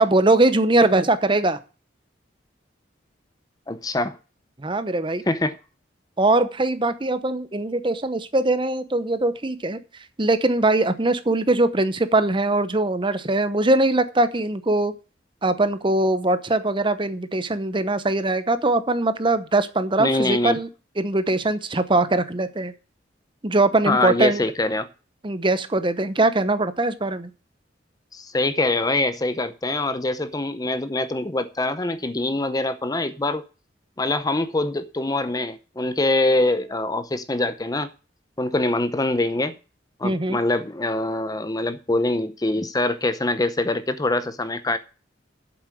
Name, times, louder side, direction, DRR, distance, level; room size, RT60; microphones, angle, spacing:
voice 1, 0.0-1.6 4.6-5.2 6.2-9.8 10.2-14.9 15.4-20.7 21.0-22.7 23.4-24.4 25.2-27.3 40.0-40.4, right 2 dB, 25° right, 0.8 m, -21 dB
voice 2, 3.7-4.2 5.3-5.6 20.0-20.6 23.9-24.9 28.1-33.4 34.0-37.9 38.4-39.6 40.0-44.8, left 2 dB, 20° left, 0.6 m, -24 dB
8.1 x 7.5 x 7.7 m
head